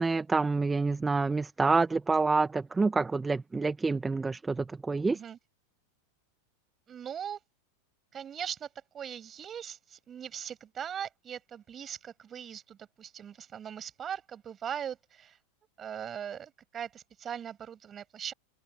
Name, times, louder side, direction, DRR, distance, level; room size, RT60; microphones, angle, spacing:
voice 1, 0.0-5.2, right 3 dB, 15° right, 1.5 m, -27 dB
voice 2, 6.9-7.4 8.1-8.7 8.9-15.4 15.8-18.3, right 8 dB, 30° right, 7.0 m, -40 dB
hypercardioid pair, 95°, 0 cm